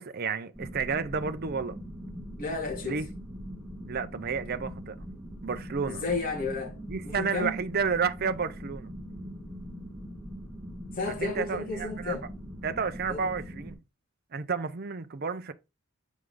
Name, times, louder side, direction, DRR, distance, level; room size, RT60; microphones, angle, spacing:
voice 1, 0.0-1.8 2.8-3.1 3.9-5.0 5.4-6.0 6.9-8.9 11.1-12.2 12.6-13.8 14.3-15.5, right 5 dB, 50° right, 0.6 m, -31 dB
sound 1, 0.5-13.8, equal, 5° left, 2.0 m, -42 dB
voice 2, 2.4-3.0 5.9-6.8 7.0-7.6 10.9-12.3 13.1-13.3, left 3 dB, 45° left, 2.7 m, -32 dB
8.2 x 4.9 x 3.8 m
head